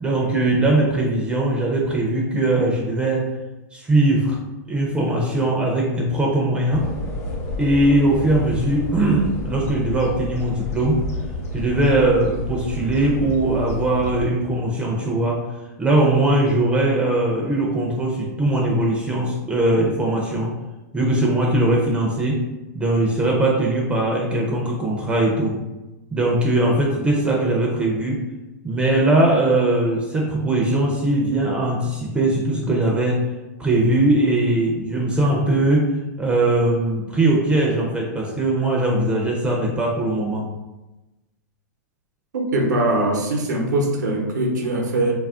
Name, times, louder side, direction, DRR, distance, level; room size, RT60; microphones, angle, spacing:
voice 1, 0.0-3.2 3.7-4.4 4.7-6.9 7.6-11.0 11.5-15.4 15.8-20.5 20.9-22.4 22.7-25.6 26.1-28.2 28.6-33.2 33.6-35.9 36.2-40.5, right 1 dB, 10° right, -2 dB, 0.4 m, -20 dB
sound 1, 6.7-14.3, left 1 dB, 65° left, 0.8 m, -30 dB
voice 2, 42.3-45.1, right 1 dB, 85° right, 1 dB, 0.7 m, -21 dB
2.4 x 2.0 x 3.5 m, 1.0 s
hypercardioid pair, 130°, 9 cm